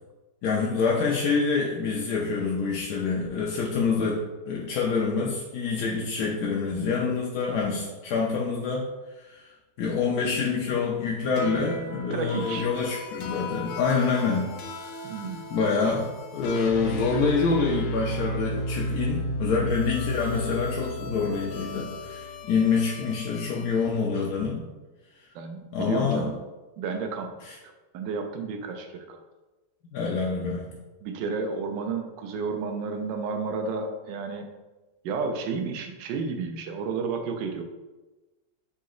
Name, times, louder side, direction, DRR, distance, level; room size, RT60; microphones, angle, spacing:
voice 1, 0.4-8.9 9.2-9.5 9.8-14.5 15.5-24.7 25.7-26.3 27.4-27.5 29.9-30.7, left 5 dB, 70° left, -3 dB, 1.0 m, -26 dB
sound 1, 11.4-23.9, left 1 dB, 90° left, 1.3 m, -34 dB
voice 2, 12.1-12.7 15.0-15.4 25.3-26.4 26.8-27.3 27.9-29.2 31.0-34.6 35.0-37.6, right 4 dB, 85° right, 5 dB, 1.3 m, -31 dB
4.0 x 2.8 x 3.7 m, 1.1 s
omnidirectional pair, 1.9 m